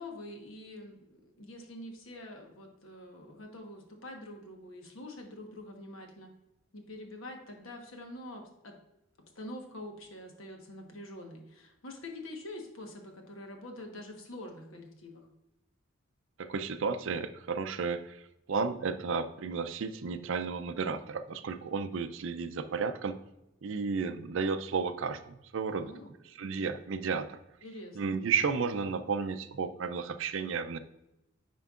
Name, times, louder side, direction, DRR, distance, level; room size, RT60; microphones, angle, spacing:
voice 1, 0.0-6.3 6.7-8.7 9.3-15.3 25.7-26.1 27.6-28.2, left 1 dB, 80° left, 3 dB, 1.2 m, -45 dB
voice 2, 16.4-23.2 23.6-25.9 26.4-27.4 28.0-30.8, right 5 dB, 70° right, 10 dB, 0.4 m, -33 dB
9.3 x 4.5 x 2.4 m, 0.89 s
head